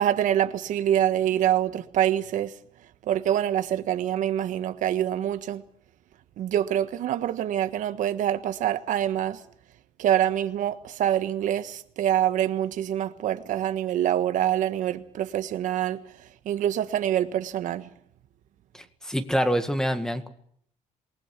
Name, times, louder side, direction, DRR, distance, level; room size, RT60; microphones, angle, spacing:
voice 1, 0.0-2.5 3.1-5.6 6.4-9.4 10.0-16.0 16.4-17.9, right 11 dB, 70° right, 1.4 m, -25 dB
voice 2, 18.7-20.3, equal, 5° left, 1.8 m, -26 dB
27.0 x 19.5 x 6.0 m
cardioid pair, 140°, 14 cm